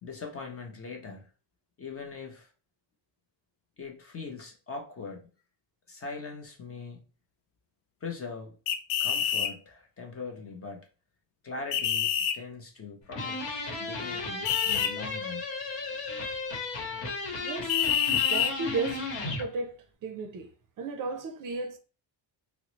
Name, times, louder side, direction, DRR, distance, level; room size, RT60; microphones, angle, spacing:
voice 1, 0.0-1.3 1.8-2.5 3.8-5.3 5.9-7.0 8.0-8.6 9.0-10.9 11.4-15.5, left 4 dB, 30° left, 0.5 m, -41 dB
sound 1, 8.7-9.5 11.7-12.4 14.5-14.9 17.7-18.5, left 9 dB, 90° left, 0.5 m, -26 dB
sound 2, 13.1-19.5, left 3 dB, 75° left, 1.0 m, -34 dB
voice 2, 17.4-17.8 18.3-19.0 19.4-19.8 20.0-21.8, right 3 dB, 45° right, 0.5 m, -34 dB
3.7 x 2.0 x 2.9 m
cardioid pair, 170°, 45 cm